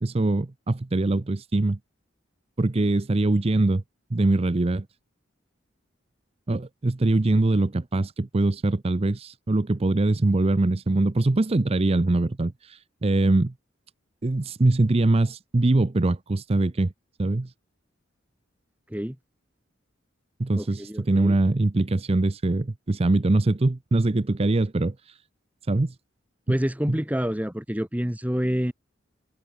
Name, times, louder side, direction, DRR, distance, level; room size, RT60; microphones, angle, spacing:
voice 1, 0.0-1.8 2.6-3.8 4.1-4.9 6.5-13.5 14.2-16.9 17.2-17.5 20.4-25.2 25.7-26.0 26.5-26.6, right 2 dB, 30° right, 0.6 m, -23 dB
voice 2, 20.5-21.3 26.5-28.7, equal, 10° right, 1.5 m, -28 dB
head